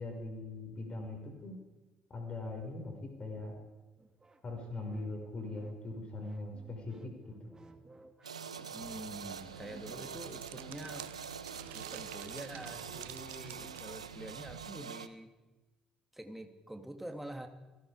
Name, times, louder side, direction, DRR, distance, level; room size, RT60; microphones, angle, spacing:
voice 1, 0.0-1.6 2.1-3.5 4.4-7.0 7.4-7.5, left 2 dB, 35° left, 2 dB, 5.9 m, -41 dB
sound 1, 4.0-14.5, right 2 dB, 20° right, 2.5 m, -58 dB
sound 2, 8.2-15.1, right 6 dB, 85° right, 0.7 m, -45 dB
voice 2, 8.7-11.1 11.7-15.3 16.1-17.5, right 1 dB, 5° right, 6 dB, 3.0 m, -46 dB
sound 3, 8.8-14.7, right 15 dB, 60° right, 0.9 m, -52 dB
30.0 x 18.5 x 5.1 m, 1.2 s
figure-of-eight pair, 50°, 3 cm